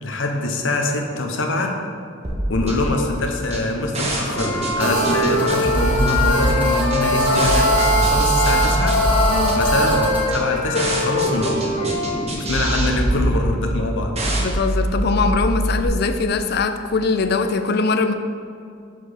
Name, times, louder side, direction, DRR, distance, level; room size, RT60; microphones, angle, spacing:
voice 1, 0.0-1.7 2.5-8.9 9.5-11.7 12.4-14.4, left 2 dB, 75° left, 2 dB, 0.9 m, -24 dB
sound 1, 2.2-15.8, right 1 dB, 35° right, 1.1 m, -24 dB
Wind instrument woodwind instrument, 4.3-8.0 8.3-12.2, left 3 dB, 90° left, 1.9 m, -23 dB
Telephone, 4.8-10.2, right 4 dB, 10° right, 1.9 m, -23 dB
voice 2, 9.3-9.7 14.4-18.1, left 4 dB, 55° left, 9 dB, 0.4 m, -21 dB
5.8 x 5.0 x 6.6 m, 2.3 s
head